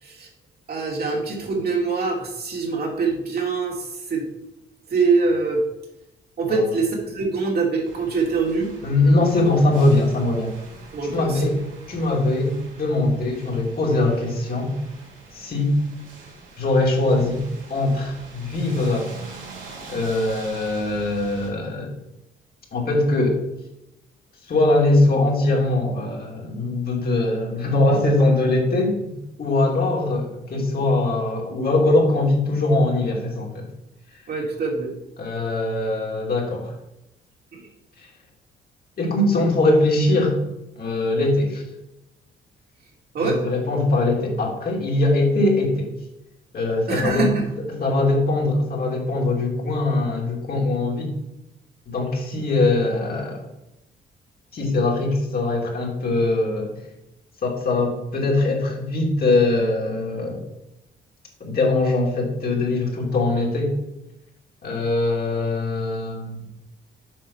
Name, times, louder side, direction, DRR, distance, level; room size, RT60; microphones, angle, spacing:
voice 1, 0.7-4.2 4.9-5.6 6.4-8.7 10.9-11.4 34.3-34.9 37.5-37.6 43.1-43.4 46.9-47.4, right 4 dB, 50° right, 0 dB, 2.4 m, -24 dB
sound 1, 7.8-21.5, right 3 dB, 75° right, 2.8 m, -43 dB
voice 2, 8.8-10.5 11.1-11.6 11.9-14.7 15.3-15.7 16.6-17.4 17.7-19.1 19.9-21.9 22.7-23.4 24.5-29.1 29.4-33.7 35.2-36.8 39.0-40.4 40.8-41.6 43.2-45.9 46.5-47.3 47.7-51.1 51.9-53.4 54.5-56.7 57.4-60.4 61.4-63.7 64.6-66.4, left 2 dB, 50° left, -1 dB, 2.7 m, -21 dB
7.6 x 5.0 x 5.6 m, 0.90 s
cardioid pair, 90°, 20 cm